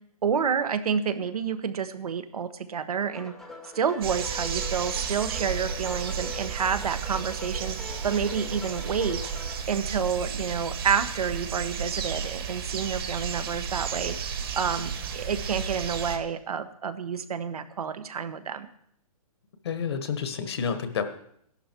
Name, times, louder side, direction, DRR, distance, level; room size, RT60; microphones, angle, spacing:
voice 1, 0.2-3.3 3.6-7.8 8.0-9.3 9.7-14.2 14.5-18.7, right 7 dB, 75° right, 10 dB, 1.3 m, -29 dB
sound 1, 3.0-9.6, left 3 dB, ahead, 0.7 m, -43 dB
sound 2, 4.0-16.2, right 7 dB, 40° right, 1.6 m, -33 dB
voice 2, 19.6-21.0, left 6 dB, 45° left, 9 dB, 1.3 m, -29 dB
14.0 x 11.5 x 4.5 m, 0.70 s
hypercardioid pair, 175°, 19 cm